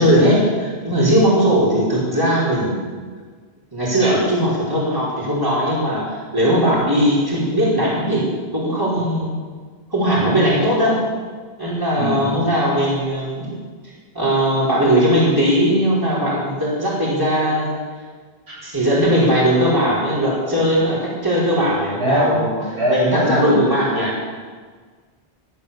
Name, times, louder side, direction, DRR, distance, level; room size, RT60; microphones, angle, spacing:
voice 1, 0.0-2.9 3.7-9.4 9.9-11.0 11.6-13.6 14.1-17.8 18.6-22.5 22.9-24.2, equal, 20° right, -6 dB, 4.8 m, -19 dB
voice 2, 12.0-12.5 22.0-23.6, equal, 85° right, -5 dB, 7.3 m, -21 dB
17.5 x 11.5 x 7.2 m, 1.5 s
omnidirectional pair, 1.1 m